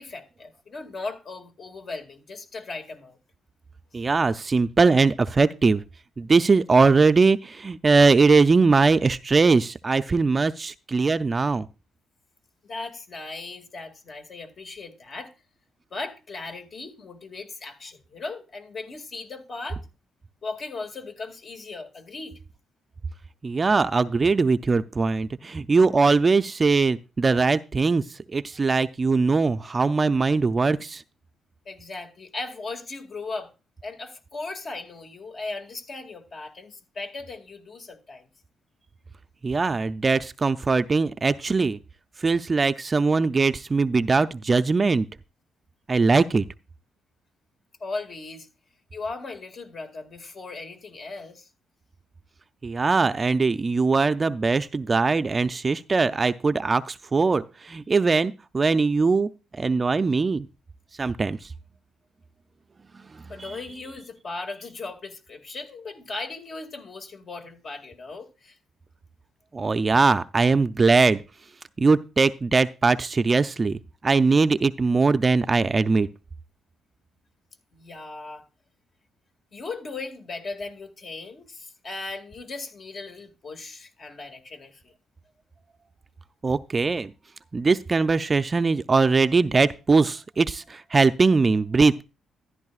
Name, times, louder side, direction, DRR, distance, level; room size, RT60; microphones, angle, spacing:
voice 1, 0.0-3.2 3.9-4.0 12.6-15.3 15.9-19.8 20.4-22.4 31.7-33.5 33.8-38.3 47.8-48.5 48.9-51.5 63.3-68.6 77.7-78.4 79.5-84.9, left 3 dB, 50° left, 2.1 m, -37 dB
voice 2, 3.9-5.8 6.2-11.7 23.4-28.0 28.3-31.0 39.4-41.8 42.2-45.1 45.9-46.4 52.6-59.3 59.6-60.5 61.0-61.4 69.5-71.2 71.8-76.1 86.4-87.1 87.5-92.0, right 4 dB, 30° right, 0.5 m, -21 dB
13.5 x 11.0 x 2.4 m
cardioid pair, 90°, 0 cm